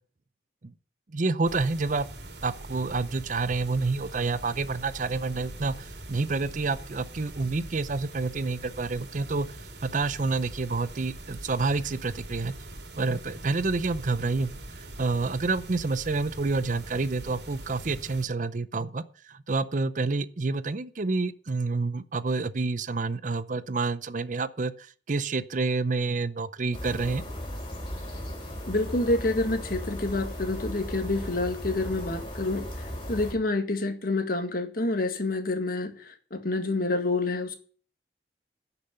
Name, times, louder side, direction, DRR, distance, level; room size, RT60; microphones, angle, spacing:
voice 1, 1.1-2.1 2.4-9.5 9.8-12.5 13.0-14.6 15.0-19.0 19.5-24.7 25.1-27.2, right 3 dB, 45° right, 16 dB, 0.6 m, -28 dB
sound 1, 1.4-18.3, right 1 dB, 70° right, 3.2 m, -43 dB
sound 2, 26.7-33.3, equal, 30° left, 4.6 m, -36 dB
voice 2, 28.7-32.7 33.1-37.5, left 2 dB, 55° left, 7 dB, 1.9 m, -28 dB
11.0 x 6.8 x 7.9 m, 0.42 s
head